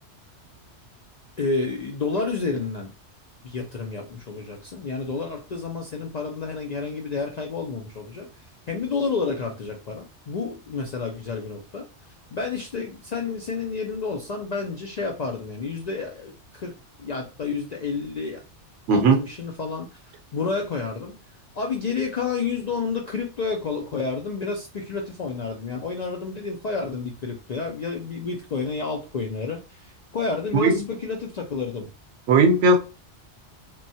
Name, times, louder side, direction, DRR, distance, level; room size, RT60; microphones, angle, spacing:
voice 1, 1.4-2.9 3.4-8.3 8.7-11.9 12.3-18.4 18.9-21.1 21.6-31.9, left 4 dB, 65° left, 0.4 m, -30 dB
voice 2, 30.5-30.8 32.3-32.8, right 3 dB, 85° right, 1.0 m, -17 dB
3.1 x 2.2 x 2.7 m
omnidirectional pair, 1.2 m